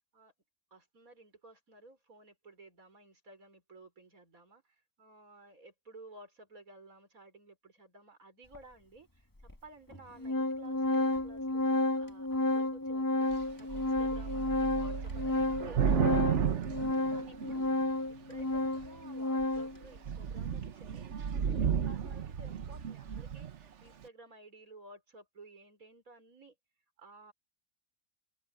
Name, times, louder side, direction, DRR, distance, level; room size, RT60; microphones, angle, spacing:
voice 1, 0.7-9.3 9.6-16.2 17.1-17.7 18.1-26.6 27.0-27.3, right 2 dB, 80° right, 5.2 m, -55 dB
Organ, 8.5-8.6 9.5-9.6 9.9-19.8, left 2 dB, 15° left, 1.5 m, -31 dB
Thunder / Rain, 13.3-13.4 13.7-17.8 18.5-19.0 19.4-19.6 19.8-23.6, right 8 dB, 60° right, 1.3 m, -33 dB
omnidirectional pair, 1.4 m